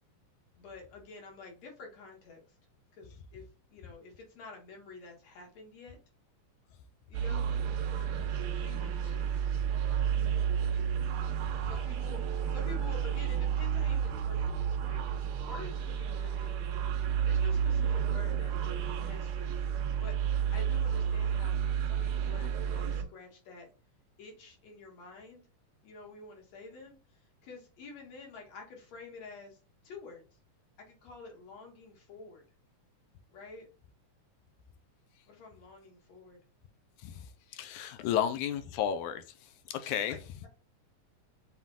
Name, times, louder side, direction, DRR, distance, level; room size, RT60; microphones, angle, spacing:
voice 1, 0.6-2.6 2.9-6.0 7.1-7.5 8.3-9.3 11.6-16.8 17.2-23.7 24.2-25.4 25.8-29.6 29.8-30.2 30.8-32.4 33.3-33.7 35.3-36.4 38.0-38.1 40.1-40.5, left 4 dB, 60° left, 2.5 m, -49 dB
sound 1, 7.1-23.0, right 8 dB, 75° right, 1.8 m, -31 dB
voice 2, 37.5-39.2 39.7-40.2, left 9 dB, 80° left, 1.9 m, -32 dB
5.8 x 3.6 x 2.3 m
omnidirectional pair, 3.7 m